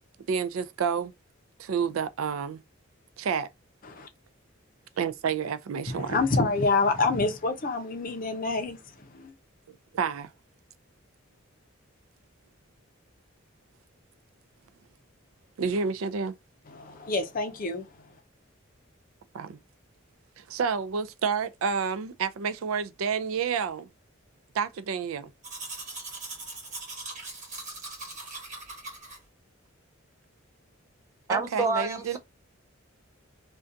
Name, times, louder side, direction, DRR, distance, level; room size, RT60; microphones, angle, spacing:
voice 1, 0.3-1.1 1.6-2.6 3.2-3.5 5.0-6.2 9.9-10.3 15.6-16.3 19.3-19.6 20.4-23.9 24.5-25.3 31.3-32.2, right 6 dB, 85° right, 0.4 m, -29 dB
voice 2, 5.9-8.8 9.1-9.3 16.7-17.9, left 3 dB, 45° left, 0.5 m, -27 dB
Domestic sounds home sounds, 25.4-29.2, right 3 dB, 35° right, 1.1 m, -40 dB
voice 3, 31.3-32.2, right 3 dB, 15° right, 0.4 m, -28 dB
2.5 x 2.2 x 2.5 m
head